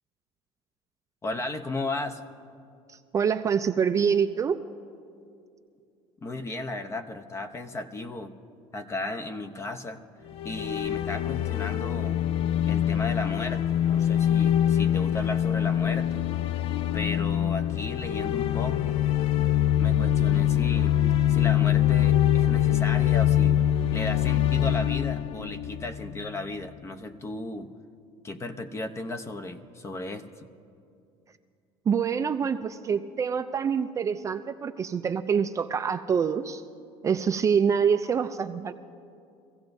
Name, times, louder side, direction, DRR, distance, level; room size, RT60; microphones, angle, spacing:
voice 1, 1.2-2.2 6.2-8.3 8.7-10.0 10.4-12.2 12.7-16.2 16.9-19.0 19.8-21.0 21.3-23.6 23.9-27.7 28.2-30.5, left 2 dB, 25° left, 9 dB, 0.8 m, -35 dB
voice 2, 2.9-4.6 31.9-36.6 37.0-38.7, right 7 dB, 30° right, 9 dB, 0.4 m, -26 dB
sound 1, 10.3-26.4, left 11 dB, 55° left, 0.4 m, -24 dB
24.5 x 16.0 x 2.7 m, 2.5 s
cardioid pair, 130°, 11 cm